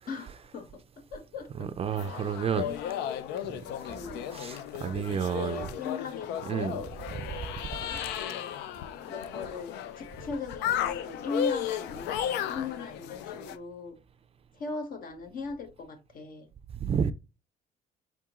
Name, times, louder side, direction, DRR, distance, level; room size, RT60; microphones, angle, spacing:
voice 1, 0.1-3.1 3.9-4.2 5.4-6.8 7.9-8.5 9.0-14.0 14.5-16.5, left 4 dB, 55° left, 1.2 m, -39 dB
voice 2, 1.6-2.7 3.4-3.6 4.3-5.7 6.4-7.4 16.7-17.1, right 7 dB, 35° right, 0.4 m, -31 dB
sound 1, 2.0-13.6, left 10 dB, 85° left, 0.5 m, -35 dB
4.8 x 3.6 x 2.9 m
cardioid pair, 110°, 17 cm